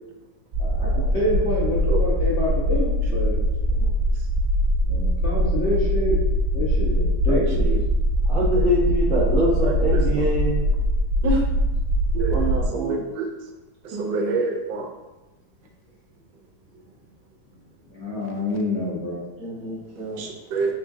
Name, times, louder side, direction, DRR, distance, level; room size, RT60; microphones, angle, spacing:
sound 1, 0.5-12.7, equal, 50° right, 0.9 m, -22 dB
voice 1, 0.6-3.4 4.9-6.2 6.5-7.8 17.9-19.2, left 1 dB, 45° left, -7 dB, 1.1 m, -27 dB
voice 2, 7.3-7.8 8.5-8.7 9.6-10.0 11.2-11.4 12.1-13.3 13.8-14.9 20.2-20.7, right 3 dB, 80° right, 2 dB, 1.2 m, -27 dB
voice 3, 8.2-10.7 12.3-13.0 19.4-20.3, right 1 dB, 10° left, -9 dB, 0.5 m, -25 dB
3.8 x 3.6 x 2.6 m, 1.1 s
omnidirectional pair, 2.0 m